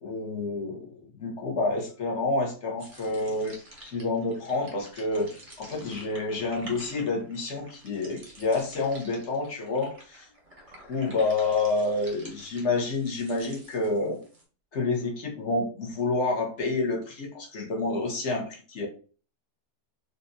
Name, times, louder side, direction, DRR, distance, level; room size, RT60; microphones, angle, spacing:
voice 1, 0.0-3.5 3.8-5.3 5.6-10.2 10.9-14.2 14.7-18.9, left 3 dB, 50° left, 0 dB, 1.0 m, -28 dB
sound 1, 2.8-14.4, right 1 dB, 30° right, 0.7 m, -49 dB
3.4 x 2.5 x 2.7 m, 0.39 s
omnidirectional pair, 1.9 m